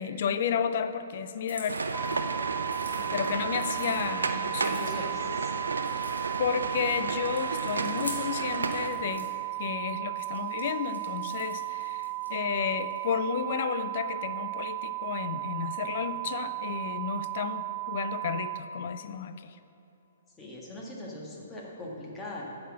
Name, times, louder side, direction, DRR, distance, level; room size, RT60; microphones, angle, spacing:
voice 1, 0.0-1.8 3.1-4.8 6.4-9.3 9.6-19.6, left 7 dB, 50° left, 11 dB, 0.4 m, -32 dB
sound 1, 1.4-2.3 2.6-4.0 4.5-5.2 5.7-6.6 7.0-9.3 10.2-13.1, left 1 dB, 85° left, 1.6 m, -45 dB
sound 2, 1.7-8.9, right 3 dB, 75° right, 0.5 m, -32 dB
sound 3, 1.9-18.6, right 20 dB, 20° right, 0.3 m, -35 dB
voice 2, 4.7-5.6 20.4-22.5, left 1 dB, 15° left, -4 dB, 1.7 m, -41 dB
9.0 x 4.2 x 7.3 m, 3.0 s
figure-of-eight pair, 125°, 0 cm